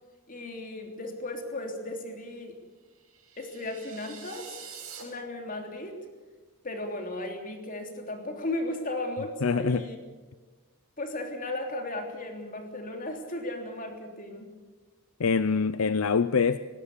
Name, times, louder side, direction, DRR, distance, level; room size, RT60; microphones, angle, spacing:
voice 1, 0.3-2.6 3.4-4.5 5.0-6.0 6.6-10.0 11.0-14.5, left 1 dB, 40° left, 4 dB, 3.3 m, -35 dB
sound 1, 3.0-5.0, right 7 dB, 75° right, 5.6 m, -45 dB
voice 2, 9.4-9.8 15.2-16.6, left 5 dB, 70° left, 14 dB, 0.6 m, -24 dB
20.0 x 17.0 x 8.3 m, 1.3 s
head